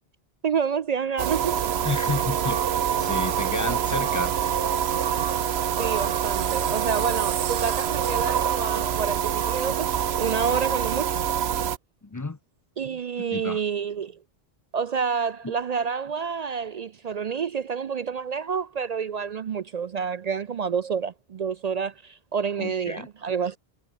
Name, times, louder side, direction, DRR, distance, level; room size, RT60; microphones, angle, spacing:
voice 1, 0.4-1.6 5.8-9.9 10.2-11.2 12.8-14.2 14.7-23.6, right 6 dB, 55° right, 0.5 m, -28 dB
sound 1, 1.2-11.8, right 9 dB, 80° right, 1.1 m, -25 dB
voice 2, 1.8-4.4 10.9-11.0 12.0-12.4 13.3-13.6 15.4-15.5 22.6-23.1, left 3 dB, 25° left, 0.5 m, -31 dB
omnidirectional pair, 1.0 m